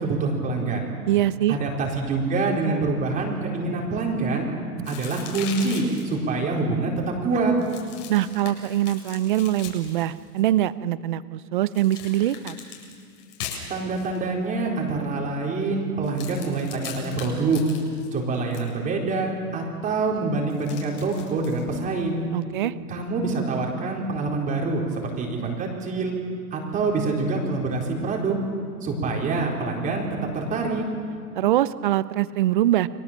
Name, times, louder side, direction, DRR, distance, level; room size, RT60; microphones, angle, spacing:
voice 1, 0.0-0.9 1.5-4.5 4.9-7.5 13.7-17.6 18.1-22.2 22.9-26.1 26.5-28.4 28.8-30.1 30.3-30.8, right 3 dB, 15° right, -1 dB, 4.3 m, -26 dB
voice 2, 1.1-1.6 4.8-4.9 8.1-12.6 22.3-22.7 31.3-32.9, right 13 dB, 35° right, 16 dB, 0.7 m, -23 dB
sound 1, 4.8-6.2 7.6-10.5 11.7-14.2 16.0-18.7 20.5-21.6, left 7 dB, 50° left, 7.7 m, -40 dB
30.0 x 24.0 x 7.5 m, 2.5 s
hypercardioid pair, 150°, 47 cm